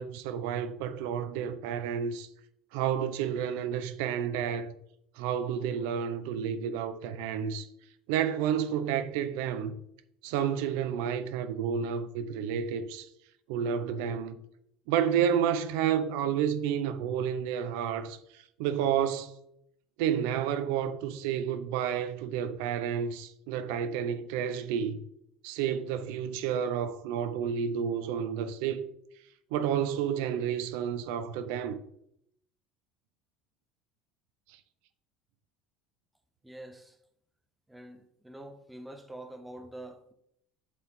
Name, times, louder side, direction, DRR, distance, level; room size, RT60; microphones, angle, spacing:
voice 1, 0.0-2.3 2.7-4.7 5.2-7.7 8.1-9.7 10.2-13.1 13.5-14.4 14.9-19.3 20.0-25.0 25.4-28.9 29.5-31.8, right 8 dB, 75° right, 0.8 m, -30 dB
voice 2, 36.4-37.0 37.7-40.1, right 1 dB, 5° right, 0.8 m, -46 dB
8.0 x 7.2 x 3.8 m
cardioid pair, 160°, 0 cm